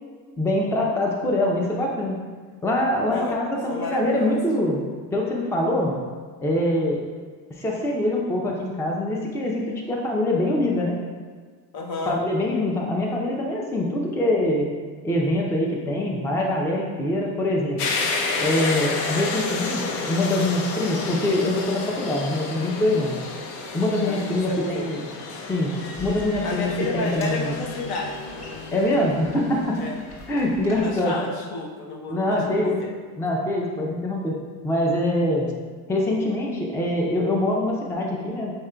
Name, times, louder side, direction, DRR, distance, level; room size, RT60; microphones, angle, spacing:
voice 1, 0.4-2.1 2.6-4.8 5.1-6.0 6.4-7.0 7.6-10.9 12.1-14.7 15.0-17.8 18.4-23.2 23.7-25.0 25.5-25.7 26.0-26.7 26.9-27.5 28.7-29.8 30.3-31.2 32.1-32.8 33.2-34.4 34.6-35.5 35.9-38.5, left 1 dB, 5° left, -1 dB, 0.4 m, -24 dB
voice 2, 3.1-3.4 3.7-4.4 11.7-12.2 24.0-24.9 26.4-28.2 28.7-29.0 29.8-30.0 30.8-32.9, left 3 dB, 55° left, 1 dB, 0.8 m, -31 dB
sound 1, 17.8-30.5, left 3 dB, 85° left, 0.7 m, -31 dB
sound 2, 25.9-31.0, equal, 35° left, 1.4 m, -44 dB
5.3 x 3.5 x 2.2 m, 1.5 s
supercardioid pair, 90°, 46 cm